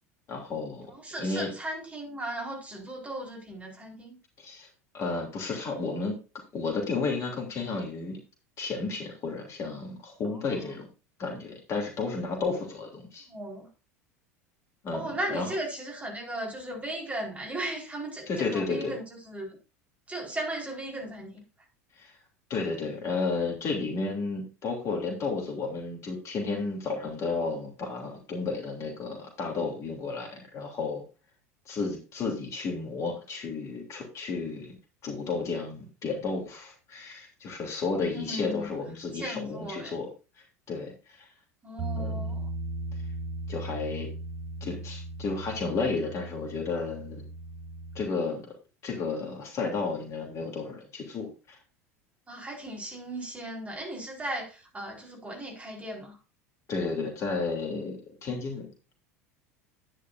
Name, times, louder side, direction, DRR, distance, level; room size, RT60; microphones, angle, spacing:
voice 1, 0.3-0.9 1.2-1.5 4.4-4.7 4.9-6.2 6.5-8.2 8.6-10.9 11.2-13.3 14.8-15.5 18.3-19.0 22.0-22.2 22.5-31.0 31.7-34.7 35.0-40.1 40.7-41.3 41.9-42.2 43.5-44.1 44.6-47.2 47.9-48.5 48.8-51.6 56.7-58.7, left 4 dB, 35° left, 3.1 m, -32 dB
voice 2, 0.9-4.2 10.2-10.6 13.3-13.7 14.9-19.5 20.1-21.4 38.1-38.7 39.1-39.9 41.6-42.5 52.3-56.2, right 1 dB, 15° right, 4.3 m, -36 dB
Bass guitar, 41.8-48.0, right 2 dB, 50° right, 6.3 m, -37 dB
10.5 x 10.0 x 2.6 m
figure-of-eight pair, 75°, 8 cm